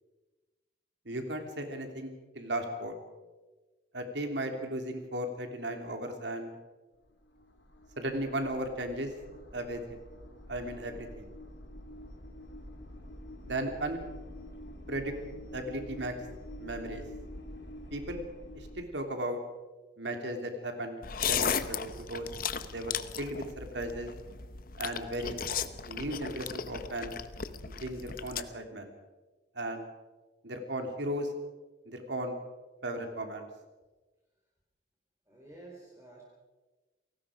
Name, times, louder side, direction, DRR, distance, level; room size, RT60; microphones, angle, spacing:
voice 1, 1.0-3.0 3.9-6.6 8.0-9.1 9.5-10.0 10.5-11.3 13.4-14.0 14.9-15.1 15.5-16.2 16.6-17.0 17.9-18.2 18.5-19.4 20.0-21.0 21.3-22.3 22.7-24.1 24.8-25.4 25.9-27.1 27.8-28.9 29.5-29.9 30.4-31.3 31.8-32.4 32.8-33.5, right 1 dB, 70° right, 5 dB, 3.1 m, -36 dB
sound 1, 6.9-18.9, left 1 dB, 80° left, 2.8 m, -47 dB
sound 2, 21.0-28.4, left 7 dB, 50° left, 0.9 m, -36 dB
voice 2, 35.3-36.2, right 2 dB, 15° right, -3 dB, 4.4 m, -51 dB
28.5 x 18.5 x 5.1 m, 1.2 s
head